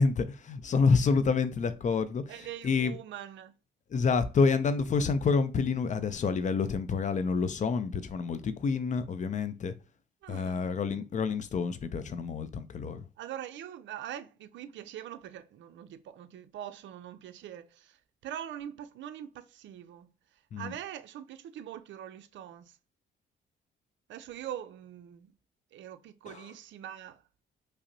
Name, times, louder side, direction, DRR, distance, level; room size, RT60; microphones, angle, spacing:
voice 1, 0.0-3.0 3.9-9.7 10.3-13.0 20.5-20.7 26.3-26.4, left 5 dB, 40° left, 0.4 m, -28 dB
voice 2, 2.3-3.5 10.2-10.7 13.2-18.0 18.2-20.1 20.6-22.8 24.1-25.3 25.7-27.2, right 11 dB, 70° right, 0.5 m, -43 dB
5.0 x 2.0 x 2.7 m
cardioid pair, 90°, 20 cm